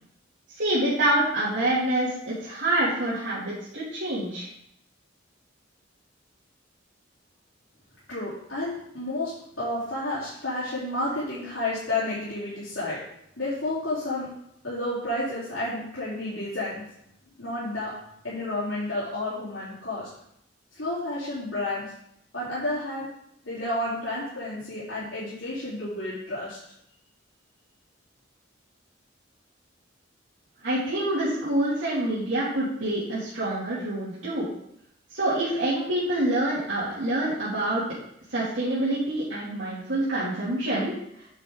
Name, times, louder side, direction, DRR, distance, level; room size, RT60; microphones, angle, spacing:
voice 1, 0.6-4.5 30.6-34.5 35.1-37.8 38.3-41.0, right 1 dB, 80° right, -10 dB, 2.7 m, -26 dB
voice 2, 8.1-13.0 13.4-14.3 14.6-16.8 17.4-17.9 18.2-20.1 20.7-21.9 22.3-23.1 23.4-26.6, left 1 dB, 80° left, -11 dB, 3.5 m, -31 dB
9.2 x 6.2 x 3.8 m, 0.73 s
head